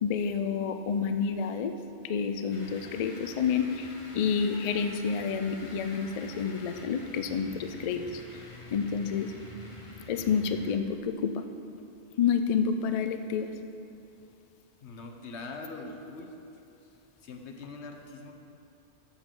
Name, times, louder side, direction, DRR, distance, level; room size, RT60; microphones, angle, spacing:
voice 1, 0.0-1.7 2.0-3.9 4.1-8.2 8.7-9.3 10.1-11.4 12.2-13.5, left 6 dB, 55° left, 8 dB, 0.4 m, -29 dB
sound 1, 2.5-11.0, left 2 dB, 30° left, 0.8 m, -47 dB
voice 2, 14.8-16.4 17.2-18.3, left 3 dB, 90° left, 4 dB, 1.1 m, -42 dB
13.0 x 7.4 x 3.8 m, 2.8 s
omnidirectional pair, 1.1 m